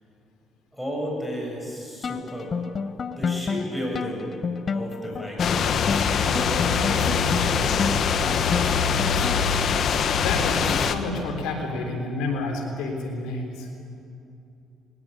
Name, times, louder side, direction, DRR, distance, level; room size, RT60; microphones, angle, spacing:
voice 1, 0.7-2.5 3.2-4.3 4.6-5.8 6.3-8.9, equal, 5° left, -1 dB, 7.7 m, -34 dB
sound 1, 2.0-9.7, left 5 dB, 40° left, 0.7 m, -30 dB
sound 2, 5.4-10.9, left 6 dB, 60° left, 1.2 m, -23 dB
voice 2, 10.2-13.7, left 3 dB, 90° left, 2 dB, 3.6 m, -29 dB
20.5 x 19.0 x 8.7 m, 2.7 s
cardioid pair, 95°, 0 cm